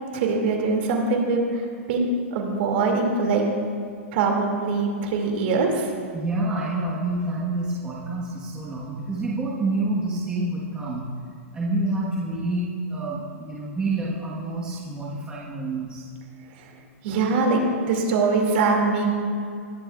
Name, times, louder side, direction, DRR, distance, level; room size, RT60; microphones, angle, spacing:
voice 1, 0.1-1.4 1.9-3.4 4.1-5.9 17.0-19.1, right 3 dB, 45° right, 1 dB, 2.4 m, -22 dB
voice 2, 6.1-11.1 11.5-16.0, right 2 dB, 10° right, -7 dB, 1.4 m, -28 dB
20.0 x 11.5 x 2.4 m, 2.3 s
hypercardioid pair, 160°, 8 cm